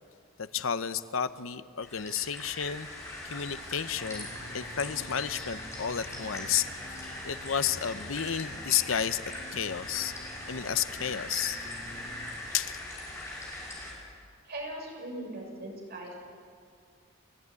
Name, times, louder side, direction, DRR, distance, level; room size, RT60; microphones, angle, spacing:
voice 1, 0.4-2.9 3.2-4.3 4.5-6.7 7.0-9.2 9.5-10.1 10.5-11.6 12.5-12.8, left 8 dB, 80° left, 13 dB, 0.8 m, -31 dB
sound 1, 1.8-13.9, left 1 dB, 15° left, 6.1 m, -40 dB
sound 2, 3.9-12.4, equal, 55° left, 7.5 m, -49 dB
voice 2, 14.5-16.1, right 1 dB, 50° right, -1 dB, 6.8 m, -39 dB
29.5 x 14.5 x 9.6 m, 2.2 s
head